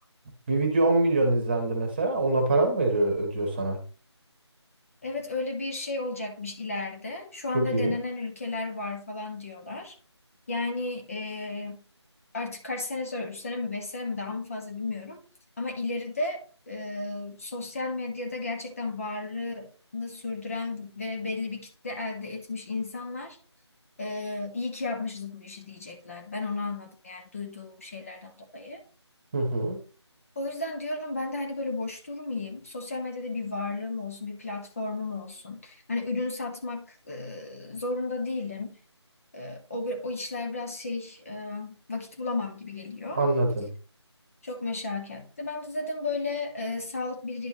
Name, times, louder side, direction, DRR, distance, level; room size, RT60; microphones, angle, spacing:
voice 1, 0.5-3.8 7.5-7.9 29.3-29.8 43.2-43.7, right 2 dB, 20° right, 1.4 m, -24 dB
voice 2, 5.0-10.0 10.5-11.8 12.3-15.2 15.6-23.4 24.0-28.8 30.3-38.8 39.3-43.2 44.4-47.5, left 3 dB, 30° left, 1.3 m, -33 dB
11.0 x 4.6 x 3.1 m
figure-of-eight pair, 165°, 15 cm